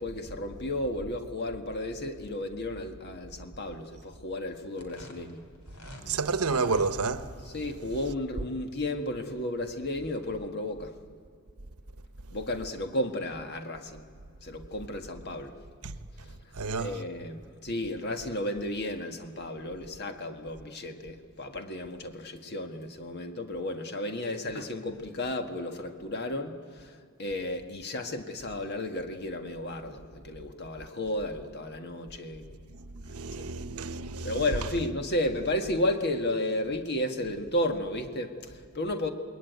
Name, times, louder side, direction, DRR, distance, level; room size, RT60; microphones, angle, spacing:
voice 1, 0.0-5.4 7.5-10.9 12.3-14.0 14.4-15.5 16.8-26.9 27.2-32.4 33.4-33.5 34.2-39.1, left 1 dB, 50° left, 1.6 m, -33 dB
sound 1, 4.7-6.1 6.4-6.9, left 1 dB, 80° left, 3.9 m, -47 dB
voice 2, 6.1-7.3 15.8-15.9 16.5-17.0 32.7-34.7, right 4 dB, 85° right, 1.1 m, -30 dB
28.0 x 21.0 x 9.3 m
head